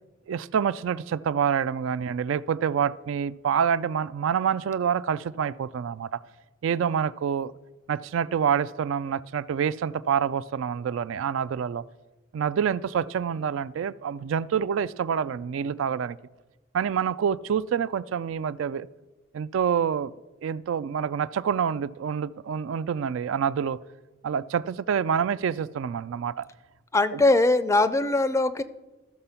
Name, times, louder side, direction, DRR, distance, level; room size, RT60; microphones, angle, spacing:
voice 1, 0.3-6.2 6.6-7.5 7.9-11.8 12.3-16.2 16.7-18.9 19.3-20.1 20.4-23.8 24.2-26.5 27.1-27.2, right 7 dB, 70° right, 16 dB, 0.3 m, -27 dB
voice 2, 26.9-28.6, left 2 dB, 15° left, 13 dB, 0.4 m, -21 dB
13.5 x 6.7 x 5.6 m, 1.1 s
head